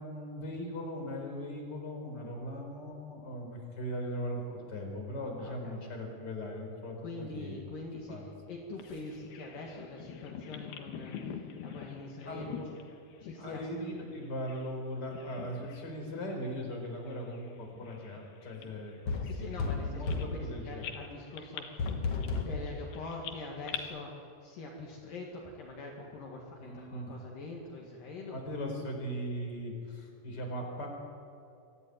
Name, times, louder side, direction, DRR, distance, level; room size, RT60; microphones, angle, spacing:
voice 1, 0.0-7.6 8.1-8.2 12.2-12.8 13.4-20.9 26.6-27.1 28.3-30.9, equal, 25° left, 2 dB, 4.7 m, -39 dB
voice 2, 5.4-5.8 7.0-12.6 13.2-13.7 19.3-28.5, left 3 dB, 65° left, -1 dB, 3.7 m, -44 dB
Bird vocalization bird call bird song, 8.8-14.8 15.0-15.9 16.3-16.5 17.1-20.5 20.8-23.8, left 8 dB, 85° left, 3.6 m, -46 dB
sound 1, 19.1-20.4 21.8-22.6, left 4 dB, 45° left, 2.4 m, -32 dB
24.5 x 16.0 x 9.6 m, 2.5 s
omnidirectional pair, 4.4 m